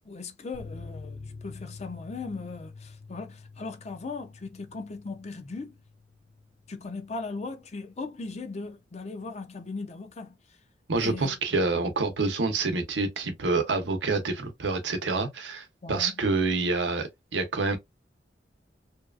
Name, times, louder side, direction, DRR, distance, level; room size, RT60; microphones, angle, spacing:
voice 1, 0.0-5.7 6.7-10.4 11.0-11.4 15.8-16.1, left 3 dB, 40° left, 0.5 m, -38 dB
sound 1, 0.5-7.6 7.9-8.0 8.3-8.4, left 4 dB, 60° left, 1.2 m, -47 dB
voice 2, 10.9-17.8, right 3 dB, 90° right, 0.7 m, -27 dB
2.7 x 2.3 x 2.3 m
head